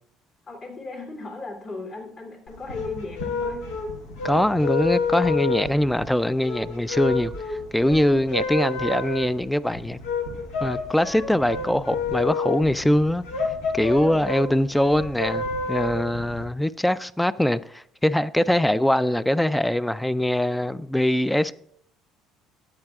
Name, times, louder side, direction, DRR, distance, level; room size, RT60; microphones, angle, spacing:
voice 1, 0.5-3.7 14.0-14.3, left 2 dB, 45° left, 2.7 m, -37 dB
sound 1, 2.5-16.4, left 4 dB, 85° left, 1.3 m, -29 dB
voice 2, 4.2-10.0 10.6-13.2 13.7-21.5, left 1 dB, 5° left, 0.3 m, -22 dB
13.5 x 8.8 x 2.4 m
supercardioid pair, 90°, 0 cm